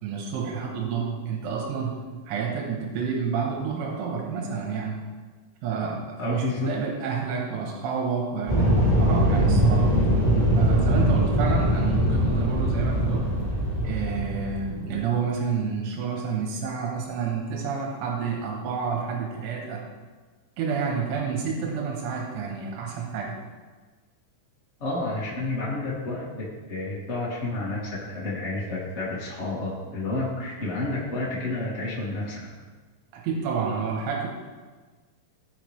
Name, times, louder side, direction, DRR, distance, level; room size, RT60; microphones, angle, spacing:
voice 1, 0.0-5.0 5.6-9.9 10.6-13.2 13.8-19.8 20.6-23.3 33.1-34.3, right 5 dB, 85° right, 0 dB, 3.7 m, -29 dB
voice 2, 6.2-6.7 24.8-27.8 28.1-32.4, left 2 dB, 30° left, -6 dB, 1.2 m, -30 dB
sound 1, 8.5-14.9, equal, 60° right, 0.4 m, -22 dB
17.0 x 5.9 x 3.4 m, 1.4 s
omnidirectional pair, 5.4 m